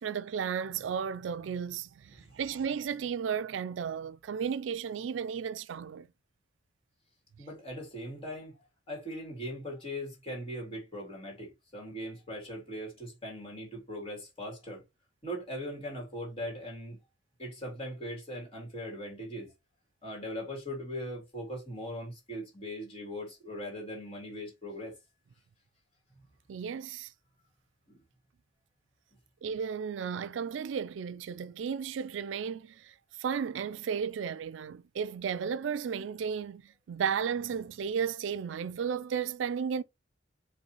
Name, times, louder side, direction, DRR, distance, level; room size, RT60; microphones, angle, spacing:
voice 1, 0.0-6.1 26.5-27.1 29.4-39.8, right 7 dB, 80° right, 0.4 m, -34 dB
voice 2, 7.4-8.5 8.9-14.8 15.2-17.0 17.4-19.5 20.0-24.9, equal, 30° left, 2.7 m, -40 dB
5.4 x 3.3 x 2.9 m
head